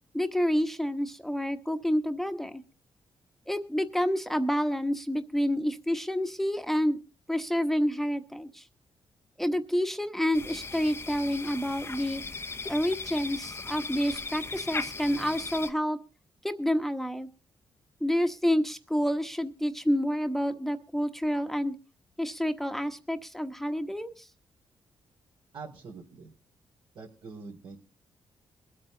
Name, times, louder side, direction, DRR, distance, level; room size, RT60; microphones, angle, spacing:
voice 1, 0.1-2.6 3.5-7.0 7.3-8.6 9.4-12.2 12.7-16.0 16.4-17.3 18.0-21.7 22.2-24.3, equal, 5° left, 7 dB, 1.1 m, -28 dB
sound 1, 10.3-15.7, left 4 dB, 30° left, 0.7 m, -37 dB
voice 2, 25.5-26.3 26.9-27.8, right 4 dB, 80° right, -5 dB, 3.7 m, -44 dB
21.5 x 8.6 x 3.9 m, 0.33 s
cardioid pair, 100°, 9 cm